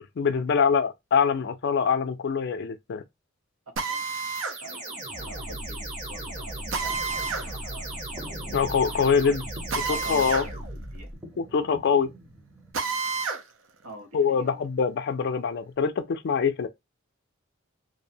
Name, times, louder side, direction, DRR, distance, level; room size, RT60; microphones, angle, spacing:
voice 1, 0.2-3.0 8.5-9.4 9.8-10.4 11.4-12.1 14.1-16.7, left 6 dB, 55° left, 0.4 m, -24 dB
Drill, 3.8-4.6 6.7-7.5 9.7-10.5 10.8-10.9 12.7-13.4, right 4 dB, 65° right, 0.5 m, -29 dB
sound 1, 4.3-11.2, right 1 dB, 35° right, 0.9 m, -36 dB
voice 2, 4.6-8.1 8.9-9.0 9.9-10.6 10.9-11.1 13.8-14.6, right 2 dB, 85° right, 0.9 m, -45 dB
sound 2, 6.8-12.7, equal, 10° right, 0.6 m, -47 dB
2.6 x 2.1 x 2.6 m
head